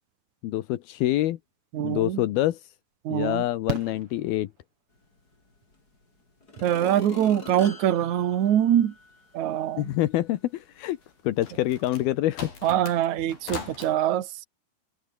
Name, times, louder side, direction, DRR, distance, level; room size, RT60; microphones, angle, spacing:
voice 1, 0.4-1.4 1.8-2.7 3.1-4.5 9.8-11.0 11.2-12.5, left 15 dB, 85° left, 3.1 m, -26 dB
voice 2, 1.7-2.2 3.0-3.4 6.6-8.9 9.3-9.9 12.6-14.3, right 11 dB, 55° right, 3.0 m, -24 dB
Fireworks, 2.0-2.1 3.7-5.0 6.8-6.9 7.1-7.2, right 3 dB, 35° right, 7.1 m, -35 dB
sound 1, 5.7-5.8 6.4-9.3 9.7-9.8, left 2 dB, 25° left, 5.8 m, -41 dB
sound 2, 11.0-13.9, left 5 dB, 70° left, 7.7 m, -40 dB
omnidirectional pair, 4.3 m